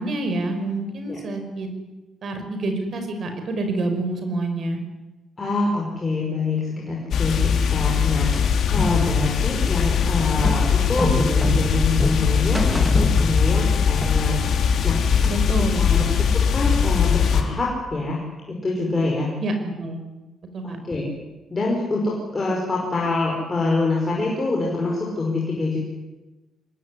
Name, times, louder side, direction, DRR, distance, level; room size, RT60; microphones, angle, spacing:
voice 1, 0.0-1.7 2.2-4.8 15.3-16.1 19.4-20.0 20.5-20.8, right 2 dB, 40° right, 6 dB, 5.5 m, -27 dB
voice 2, 5.4-15.0 15.6-18.2 18.5-19.3 20.6-21.1 21.5-25.8, left 2 dB, 15° left, -2 dB, 5.3 m, -25 dB
sound 1, 7.1-17.4, left 7 dB, 55° left, 3.5 m, -20 dB
sound 2, 8.3-13.8 14.0-15.6, equal, ahead, 2.3 m, -28 dB
24.5 x 21.0 x 9.9 m, 1.1 s
cardioid pair, 175°, 0 cm